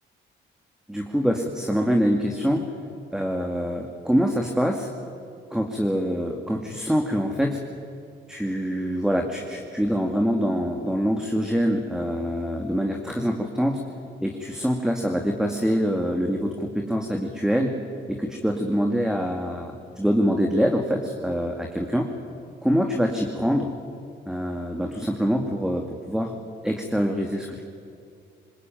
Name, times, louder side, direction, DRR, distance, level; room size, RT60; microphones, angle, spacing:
voice 1, 0.9-2.6 3.1-4.9 5.5-7.6 8.3-13.8 14.2-17.7 18.1-22.1 22.6-23.7 24.3-26.3 26.6-27.6, equal, 5° right, 2 dB, 2.4 m, -25 dB
26.0 x 21.0 x 9.3 m, 2.4 s
cardioid pair, 90°, 20 cm